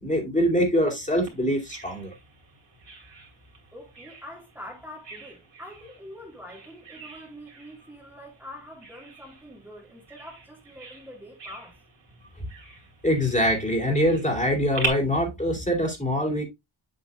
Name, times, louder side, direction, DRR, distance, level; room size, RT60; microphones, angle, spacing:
voice 1, 0.0-2.1 12.4-12.5 13.0-16.5, equal, 15° left, 2.7 m, -24 dB
Bird vocalization bird call bird song, 1.3-14.9, right 4 dB, 60° right, 2.8 m, -41 dB
voice 2, 3.7-11.8, left 1 dB, 5° right, 2.0 m, -44 dB
7.7 x 7.0 x 2.3 m
wide cardioid pair, 120°, 48 cm